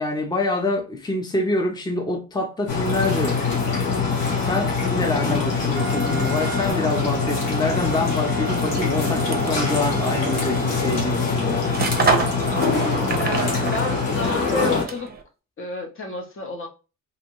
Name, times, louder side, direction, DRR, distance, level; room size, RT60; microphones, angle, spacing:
voice 1, 0.0-3.4 4.4-11.7, left 2 dB, 15° left, 0.6 m, -26 dB
sound 1, 2.7-14.8, left 4 dB, 90° left, 0.9 m, -23 dB
Wind instrument woodwind instrument, 5.7-11.0, right 7 dB, 85° right, 0.5 m, -35 dB
sound 2, 8.4-15.2, right 4 dB, 30° right, 0.6 m, -29 dB
voice 2, 13.2-15.1 15.6-16.7, left 3 dB, 40° left, 0.8 m, -29 dB
2.6 x 2.1 x 3.0 m
cardioid pair, 65°, 32 cm